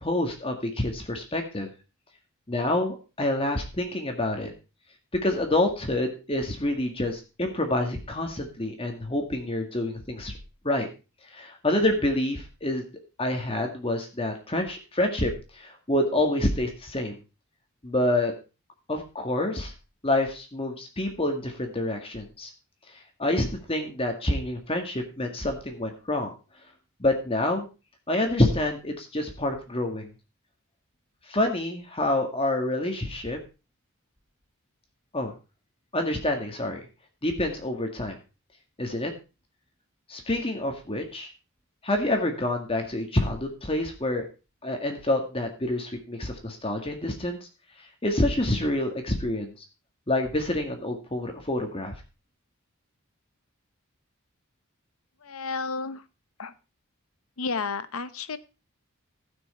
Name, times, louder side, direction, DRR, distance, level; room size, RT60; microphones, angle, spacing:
voice 1, 0.0-1.7 2.5-4.5 5.2-10.3 10.6-10.9 11.3-12.8 13.2-17.2 17.8-18.3 18.9-19.7 20.0-22.5 23.2-26.3 27.0-27.7 28.1-30.1 31.3-33.4 35.1-35.3 35.9-36.8 37.2-38.2 38.8-39.1 40.1-41.3 41.8-44.2 44.6-47.5 48.0-49.5 50.1-51.9, left 1 dB, 25° left, 4 dB, 1.8 m, -27 dB
voice 2, 55.2-56.0 56.4-56.5 57.4-58.4, left 4 dB, 80° left, 14 dB, 0.9 m, -32 dB
15.5 x 6.2 x 4.3 m, 0.31 s
head